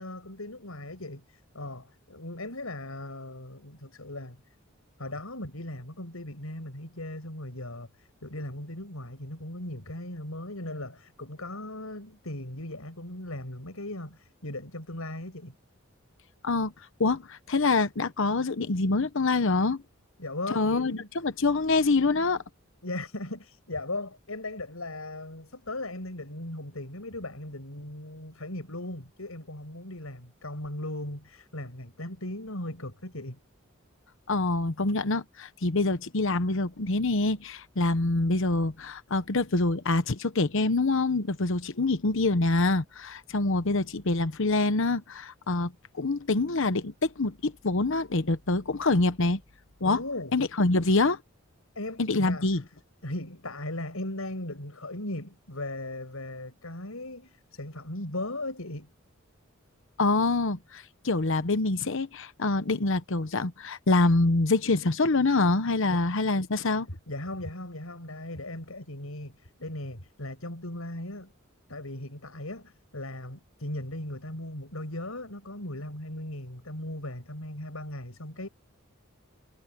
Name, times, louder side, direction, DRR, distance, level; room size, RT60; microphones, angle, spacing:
voice 1, 0.0-4.4 5.0-15.5 20.2-21.1 22.8-33.4 49.8-50.4 51.7-52.5 53.0-58.9 65.9-66.1 66.4-66.5 67.1-71.3 71.7-78.5, left 1 dB, 85° left, 6.3 m, -38 dB
voice 2, 17.0-19.8 20.5-22.4 34.3-49.4 49.8-50.0 50.3-51.2 52.0-52.6 60.0-66.9, left 3 dB, 65° left, 1.0 m, -25 dB
head